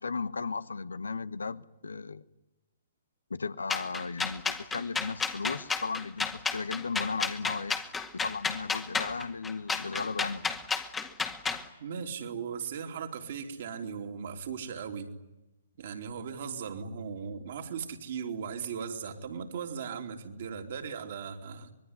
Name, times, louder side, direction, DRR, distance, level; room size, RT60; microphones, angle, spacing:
voice 1, 0.0-2.2 3.3-7.8 8.1-10.6, left 4 dB, 70° left, 16 dB, 1.2 m, -35 dB
sound 1, 3.7-11.6, left 5 dB, 10° left, 2.0 m, -32 dB
voice 2, 11.8-15.2 15.8-21.7, right 6 dB, 50° right, 4 dB, 3.1 m, -38 dB
25.0 x 22.0 x 9.8 m, 0.98 s
figure-of-eight pair, 120°, 0 cm